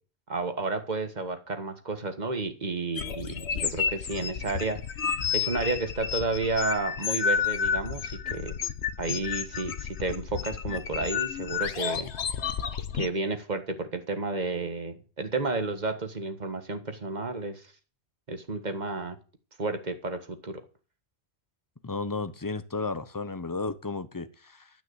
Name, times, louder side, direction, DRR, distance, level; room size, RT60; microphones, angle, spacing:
voice 1, 0.3-4.8 5.3-8.5 9.0-12.1 13.0-17.6 18.3-19.2 19.6-20.6, right 3 dB, 40° right, 1.7 m, -31 dB
sound 1, 3.0-13.1, left 7 dB, 85° left, 1.3 m, -31 dB
voice 2, 21.8-24.7, left 3 dB, 20° left, 0.9 m, -33 dB
12.5 x 6.1 x 8.1 m
omnidirectional pair, 1.1 m